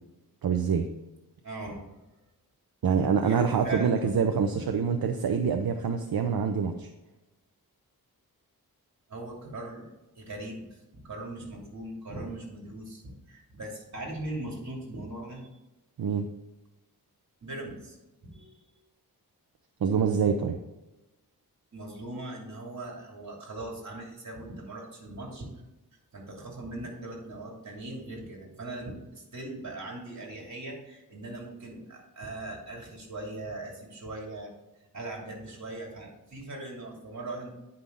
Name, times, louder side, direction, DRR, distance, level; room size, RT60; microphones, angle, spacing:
voice 1, 0.4-0.9 2.8-6.9 16.0-16.3 19.8-20.6, right 6 dB, 70° right, 5 dB, 0.7 m, -26 dB
voice 2, 1.4-1.8 3.2-4.6 9.1-9.9 10.2-15.5 17.4-18.0 18.2-18.7 21.7-25.5 26.1-34.5 34.9-37.5, right 2 dB, 45° right, -1 dB, 3.0 m, -40 dB
9.7 x 5.5 x 3.9 m, 1.0 s
wide cardioid pair, 115°, 38 cm